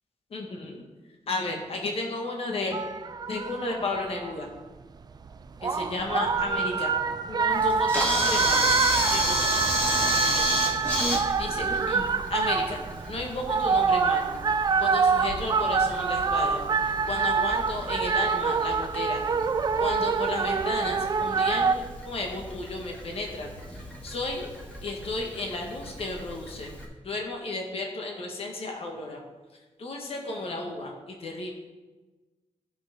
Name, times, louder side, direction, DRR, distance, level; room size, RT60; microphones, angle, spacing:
voice 1, 0.3-0.8 1.3-2.8 3.3-4.5 5.6-6.9 7.3-8.7 9.1-9.4 10.0-10.6 11.4-12.8 13.1-19.2 19.8-24.5 24.8-26.7 27.0-29.2 29.8-31.5, left 2 dB, 50° left, 1 dB, 1.3 m, -33 dB
sound 1, 2.7-4.3 5.1-21.7, right 5 dB, 35° right, 0.3 m, -26 dB
Camera, 7.5-26.8, equal, 10° left, 2.0 m, -32 dB
15.0 x 5.8 x 3.6 m, 1.2 s
wide cardioid pair, 175°, 12 cm